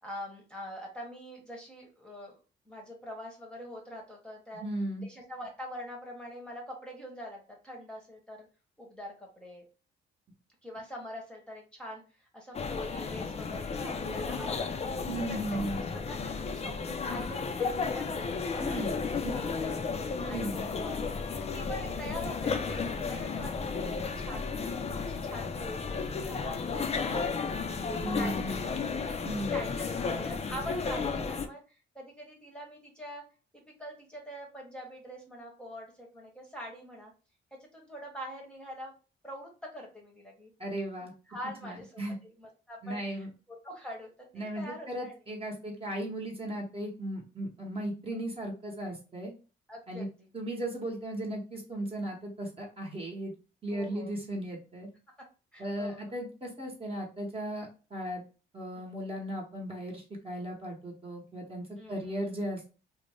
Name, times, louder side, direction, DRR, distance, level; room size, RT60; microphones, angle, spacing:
voice 1, 0.0-2.4 2.7-4.6 5.0-8.5 8.8-9.6 10.6-14.8 15.3-18.3 18.5-19.8 20.3-24.5 25.0-27.8 28.1-28.8 29.4-33.2 33.5-37.1 37.6-38.9 39.2-40.5 41.0-45.1 49.7-50.3 53.7-54.1 55.5-56.2 58.8-58.9 61.8-62.3, equal, 5° left, -1 dB, 0.9 m, -44 dB
voice 2, 4.5-5.1 15.1-15.8 18.6-19.0 19.2-19.3 20.2-20.6 28.0-28.7 29.2-29.6 40.6-41.1 41.6-42.2 42.8-43.3 44.3-49.3 49.9-50.1 50.3-53.3 53.6-54.9 55.6-58.2 58.5-62.8, right 1 dB, 30° right, -1 dB, 0.9 m, -36 dB
sound 1, 12.5-31.5, left 5 dB, 30° left, 0.4 m, -33 dB
2.6 x 2.1 x 3.2 m, 0.34 s
cardioid pair, 90°, 20 cm